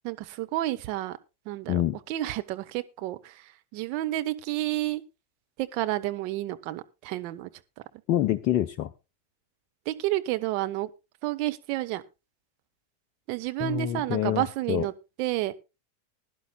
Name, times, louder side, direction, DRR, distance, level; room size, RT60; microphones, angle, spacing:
voice 1, 0.0-1.2 1.4-1.8 2.1-5.0 5.6-7.5 9.8-10.9 11.2-12.0 13.3-14.9 15.2-15.5, right 15 dB, 45° right, 10 dB, 0.9 m, -30 dB
voice 2, 8.1-8.9 13.6-14.9, left 12 dB, 40° left, 9 dB, 0.6 m, -26 dB
20.5 x 11.0 x 2.3 m, 0.27 s
figure-of-eight pair, 90°, 0 cm